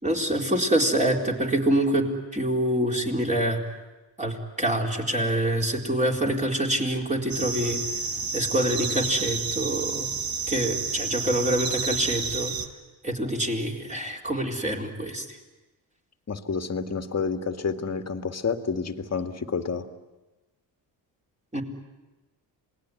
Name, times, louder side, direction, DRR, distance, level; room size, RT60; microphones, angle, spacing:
voice 1, 0.0-3.6 4.2-7.8 8.3-10.1 10.5-12.5 13.0-15.4 21.5-21.6, right 1 dB, 15° right, 0 dB, 4.3 m, -26 dB
sound 1, 7.3-12.7, right 5 dB, 50° right, 2.1 m, -30 dB
voice 2, 16.3-19.9, left 5 dB, 35° left, 7 dB, 2.0 m, -29 dB
27.5 x 19.5 x 9.6 m, 1.1 s
cardioid pair, 90°, 44 cm